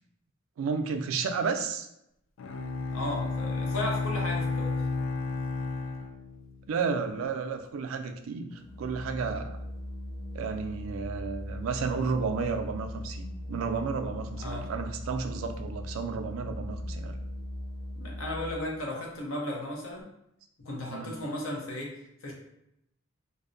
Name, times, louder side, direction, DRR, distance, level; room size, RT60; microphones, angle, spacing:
voice 1, 0.6-1.9 6.7-9.6 10.3-17.2 20.9-21.1, right 5 dB, 80° right, 6 dB, 0.3 m, -32 dB
Bowed string instrument, 2.4-6.8, left 3 dB, 65° left, 0.3 m, -32 dB
voice 2, 2.9-4.8 14.4-14.7 18.0-20.1 20.6-22.3, left 1 dB, 90° left, -1 dB, 0.7 m, -35 dB
Organ, 8.5-18.8, left 1 dB, ahead, 0.5 m, -39 dB
2.5 x 2.0 x 2.5 m, 0.79 s
head